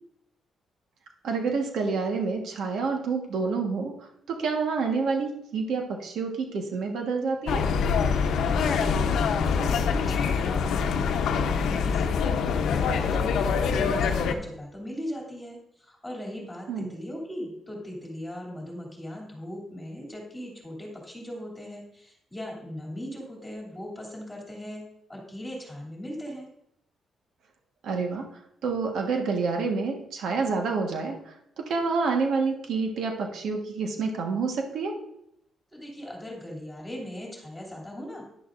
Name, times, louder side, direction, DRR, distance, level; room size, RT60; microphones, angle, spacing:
voice 1, 1.2-7.6 16.7-16.9 27.8-28.3 28.6-35.0, right 4 dB, 70° right, 2 dB, 1.4 m, -28 dB
sound 1, 7.5-14.3, left 6 dB, 80° left, 0.8 m, -25 dB
voice 2, 8.4-12.4 12.7-24.8 25.1-26.5 35.7-38.2, equal, 5° left, -2 dB, 2.9 m, -39 dB
11.0 x 10.5 x 2.6 m, 0.76 s
cardioid pair, 145°, 0 cm